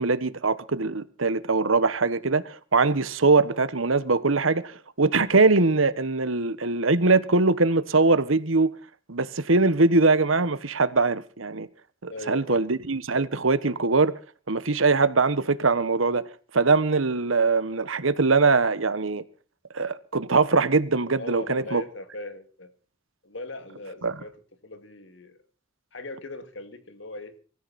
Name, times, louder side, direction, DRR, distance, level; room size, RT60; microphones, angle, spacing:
voice 1, 0.0-8.7 9.1-11.7 12.0-14.1 14.5-16.3 16.5-19.2 19.7-21.8 24.0-24.1, right 3 dB, 85° right, 1.3 m, -22 dB
voice 2, 12.1-12.7 21.2-22.7 23.2-24.3 24.6-25.4 25.9-27.4, left 2 dB, 65° left, 2.4 m, -39 dB
23.5 x 14.0 x 4.3 m
head